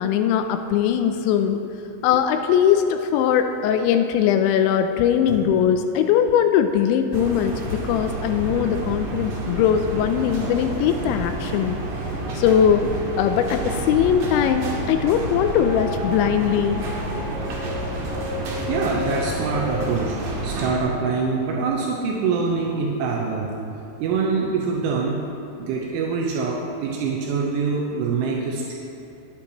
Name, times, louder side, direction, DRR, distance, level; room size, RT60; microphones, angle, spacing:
voice 1, 0.0-1.7 2.0-11.8 12.3-12.9 13.2-16.8, left 9 dB, 85° left, 7 dB, 2.7 m, -20 dB
sound 1, 7.1-20.8, right 2 dB, 60° right, 2.1 m, -30 dB
sound 2, 10.7-23.0 23.6-23.7, left 2 dB, 55° left, 3.4 m, -37 dB
sound 3, 13.8-17.2, left 1 dB, 25° left, 2.6 m, -40 dB
voice 2, 18.7-23.5 24.0-25.2 25.6-28.8, right 4 dB, 85° right, -1 dB, 3.2 m, -24 dB
21.5 x 8.7 x 2.9 m, 2.8 s
omnidirectional pair, 5.6 m